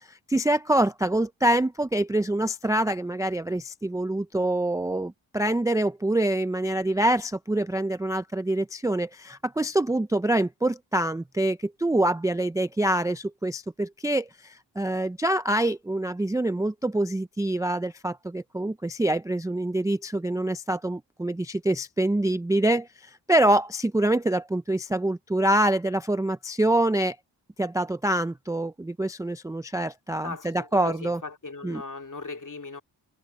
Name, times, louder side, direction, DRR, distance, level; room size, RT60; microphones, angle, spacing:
voice 1, 0.0-27.2 27.6-31.2 31.6-31.8, right 1 dB, 10° right, 0.4 m, -25 dB
voice 2, 30.2-32.8, left 3 dB, 40° left, 2.4 m, -38 dB
wide cardioid pair, 80°, 45 cm